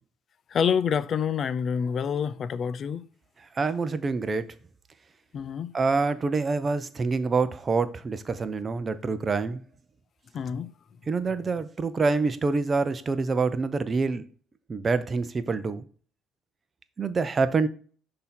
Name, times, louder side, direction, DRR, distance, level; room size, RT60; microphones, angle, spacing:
voice 1, 0.5-3.0 5.3-5.7 10.3-10.7, left 7 dB, 45° left, 0.4 m, -27 dB
voice 2, 3.6-4.4 5.7-9.6 11.1-14.2 14.7-15.8 17.0-17.7, right 4 dB, 30° right, 0.6 m, -26 dB
6.3 x 2.8 x 5.6 m
cardioid pair, 105°, 0 cm